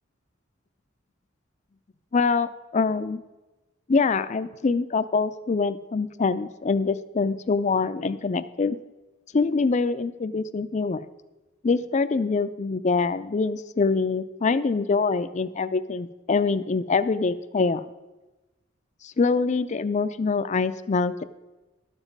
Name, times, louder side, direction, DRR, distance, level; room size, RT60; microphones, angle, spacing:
voice 1, 2.1-3.2 3.9-8.8 9.3-11.1 11.6-17.9 19.0-21.2, left 4 dB, 35° left, 13 dB, 0.4 m, -24 dB
11.5 x 7.1 x 5.3 m, 1.1 s
head